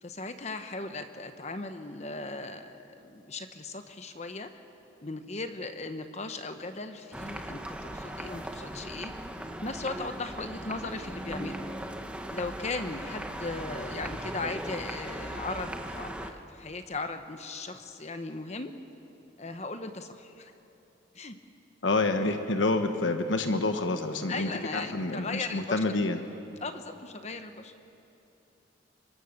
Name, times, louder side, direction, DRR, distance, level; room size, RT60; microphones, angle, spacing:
voice 1, 0.0-4.5 5.0-9.1 9.6-11.7 12.3-18.7 19.4-20.5 21.1-21.4 24.3-25.8 26.6-27.7, left 3 dB, 35° left, 8 dB, 1.0 m, -37 dB
sound 1, 7.1-16.3, right 1 dB, 5° right, 1.0 m, -38 dB
voice 2, 21.8-26.2, left 2 dB, 85° left, 7 dB, 1.2 m, -28 dB
25.0 x 24.0 x 6.7 m, 2.9 s
head